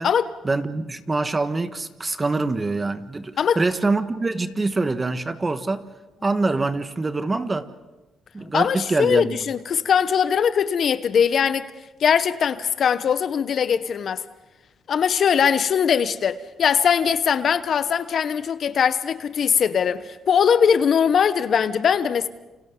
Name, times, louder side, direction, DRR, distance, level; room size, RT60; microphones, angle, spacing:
voice 1, 0.4-5.9 6.2-7.7 8.3-9.4, right 3 dB, 25° right, 1.4 m, -25 dB
voice 2, 8.4-11.7 12.0-14.2 14.9-22.3, left 7 dB, 55° left, 0.9 m, -21 dB
29.5 x 27.5 x 3.8 m
cardioid pair, 90°, 0 cm